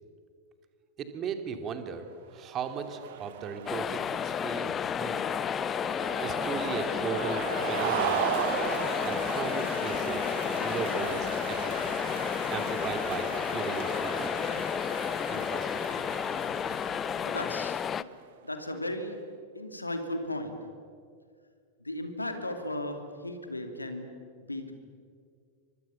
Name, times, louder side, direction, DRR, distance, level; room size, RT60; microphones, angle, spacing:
voice 1, 1.0-2.1 2.3-5.2 6.2-8.3 9.0-10.3 10.6-11.7 12.5-14.6 15.3-16.0, right 6 dB, 30° right, 7 dB, 2.7 m, -37 dB
sound 1, 2.4-18.0, right 11 dB, 55° right, 1.5 m, -37 dB
sound 2, 3.7-18.0, left 8 dB, 25° left, 0.6 m, -31 dB
sound 3, 13.3-13.4, equal, ahead, 7.1 m, -55 dB
voice 2, 17.2-18.1 18.4-20.8 21.8-24.7, left 1 dB, 85° left, 7 dB, 2.7 m, -36 dB
30.0 x 24.5 x 7.1 m, 2.2 s
figure-of-eight pair, 90°, 0 cm